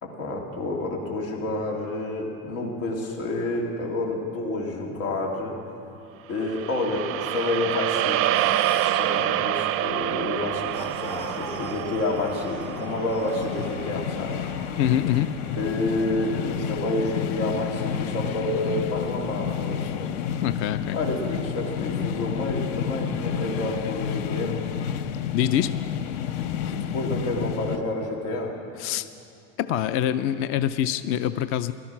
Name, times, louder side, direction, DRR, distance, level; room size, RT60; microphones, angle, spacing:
voice 1, 0.0-5.5 6.3-8.4 8.7-14.5 15.6-20.1 20.9-24.6 26.7-28.5, left 2 dB, 85° left, -1 dB, 3.1 m, -29 dB
sound 1, 6.4-14.7, right 13 dB, 35° right, 0.4 m, -27 dB
sound 2, 8.2-9.1 10.7-13.9, left 2 dB, 15° left, 0.9 m, -43 dB
sound 3, 10.0-27.8, left 9 dB, 65° left, 0.8 m, -31 dB
voice 2, 14.8-15.3 20.4-21.0 25.3-25.7 28.8-29.1 29.6-31.7, left 11 dB, 35° left, 13 dB, 0.4 m, -24 dB
17.0 x 12.5 x 5.9 m, 2.6 s
supercardioid pair, 135°, 38 cm